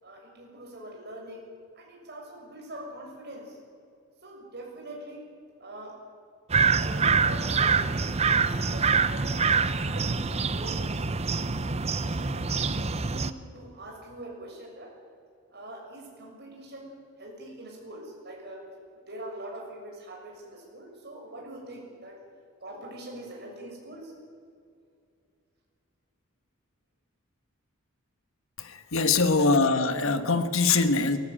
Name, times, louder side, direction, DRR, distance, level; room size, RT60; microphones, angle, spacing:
voice 1, 0.0-1.4 1.7-3.6 4.2-5.2 5.6-6.0 6.7-7.9 8.2-9.2 9.5-11.3 12.2-14.9 15.5-18.6 19.1-22.2 22.6-24.1, right 1 dB, 50° right, -1 dB, 6.6 m, -43 dB
sound 1, 6.5-13.3, right 5 dB, 30° right, 0.7 m, -25 dB
voice 2, 28.6-31.2, left 3 dB, 65° left, 10 dB, 1.4 m, -23 dB
23.0 x 15.5 x 8.9 m, 2.4 s
head